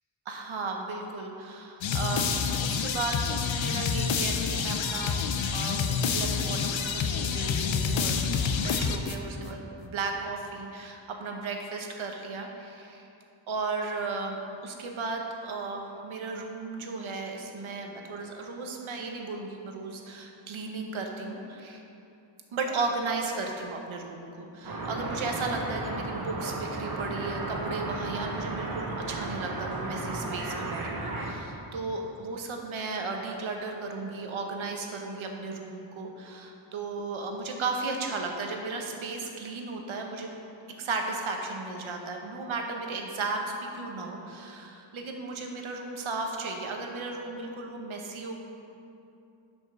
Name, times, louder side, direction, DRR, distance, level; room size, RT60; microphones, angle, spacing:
voice 1, 0.3-3.2 3.5-5.2 5.5-8.2 8.6-13.1 13.5-21.8 22.5-40.3 40.8-48.3, right 3 dB, 90° right, 2 dB, 1.1 m, -35 dB
sound 1, 1.8-9.5, left 6 dB, 75° left, 0.7 m, -28 dB
sound 2, 24.6-31.3, right 2 dB, 50° right, 1.2 m, -34 dB
7.5 x 5.4 x 6.2 m, 2.8 s
wide cardioid pair, 75°, 47 cm